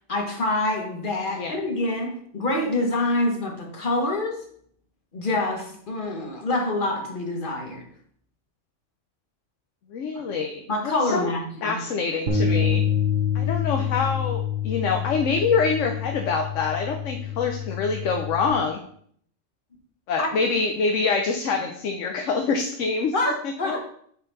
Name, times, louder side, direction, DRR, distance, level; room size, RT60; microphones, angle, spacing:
voice 1, 0.1-4.4 5.1-7.9 10.7-11.8 20.2-20.3 23.1-23.8, left 2 dB, 45° left, 2 dB, 1.4 m, -26 dB
voice 2, 9.9-10.6 11.1-11.3 11.6-12.8 13.3-18.8 20.1-23.1 23.6-23.7, left 4 dB, 80° left, 3 dB, 1.1 m, -25 dB
sound 1, 12.3-18.5, left 7 dB, 90° right, 1.3 m, -26 dB
8.9 x 4.4 x 4.0 m, 0.62 s
omnidirectional pair, 1.3 m